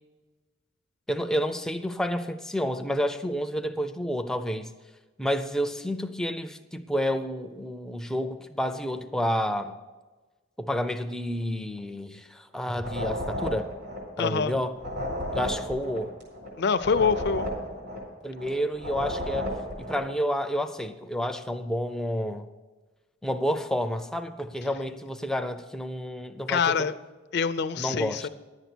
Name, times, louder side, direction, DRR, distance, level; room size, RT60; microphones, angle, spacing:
voice 1, 1.1-4.7 5.2-9.8 10.6-13.7 14.2-14.8 15.3-16.1 18.2-19.5 19.8-22.5 23.2-26.7 27.8-28.3, equal, 5° left, 8 dB, 0.5 m, -30 dB
sound 1, 12.7-20.1, left 1 dB, 55° right, 4.3 m, -33 dB
voice 2, 14.2-14.5 16.6-17.5 26.5-26.9 27.3-28.3, left 6 dB, 55° left, 13 dB, 0.5 m, -25 dB
11.0 x 8.1 x 6.0 m, 1.3 s
head